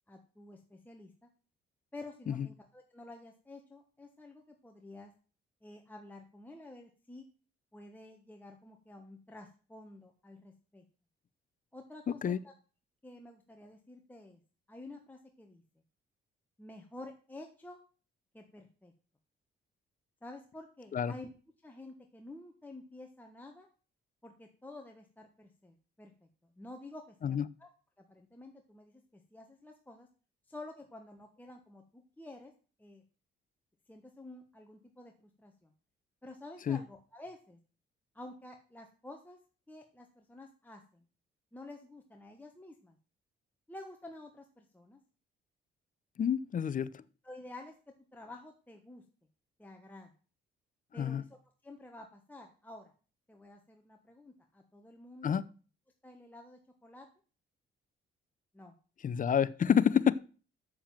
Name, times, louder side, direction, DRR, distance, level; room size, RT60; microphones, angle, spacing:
voice 1, 0.1-1.3 1.9-5.1 5.6-7.2 7.7-10.8 11.7-12.5 13.0-14.4 14.7-15.6 16.6-17.8 18.3-18.9 20.2-21.3 21.6-23.7 24.2-26.3 26.6-27.7 28.0-30.1 30.5-32.5 32.8-33.0 33.9-35.7 36.2-37.6 38.1-39.4 39.7-41.0 41.5-43.0 43.7-45.0 47.2-47.7 48.1-49.0 49.6-50.1 50.9-51.3 51.6-52.9 53.3-55.4 56.0-57.1 58.5-58.7, left 2 dB, 10° left, 2 dB, 1.3 m, -50 dB
voice 2, 46.2-47.0 50.9-51.2 55.2-55.5 59.0-60.2, left 8 dB, 40° left, 18 dB, 0.6 m, -28 dB
7.4 x 7.0 x 7.4 m, 0.37 s
cardioid pair, 90°, 20 cm